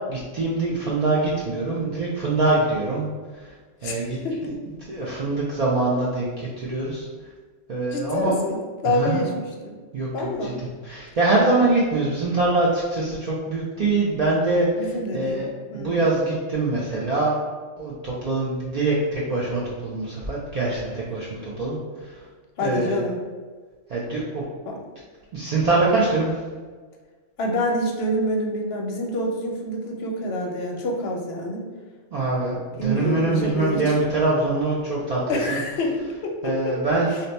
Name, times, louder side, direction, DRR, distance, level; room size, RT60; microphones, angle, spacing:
voice 1, 0.1-3.1 3.4-3.5 3.8-4.2 4.4-4.5 4.9-7.1 7.7-8.3 8.8-9.2 9.9-10.5 10.8-14.9 15.1-15.5 15.7-17.3 17.8-22.1 22.6-23.0 23.9-24.4 25.3-26.4 32.1-35.2 35.5-35.6 36.4-37.1, right 2 dB, 60° right, -6 dB, 0.4 m, -24 dB
voice 2, 3.8-4.6 7.9-8.6 8.8-9.8 10.1-10.6 14.7-16.0 22.6-23.2 24.7-24.8 27.4-31.7 32.7-33.9 35.3-36.8 37.1-37.2, left 1 dB, 65° left, 1 dB, 0.7 m, -27 dB
2.6 x 2.2 x 4.0 m, 1.4 s
omnidirectional pair, 1.3 m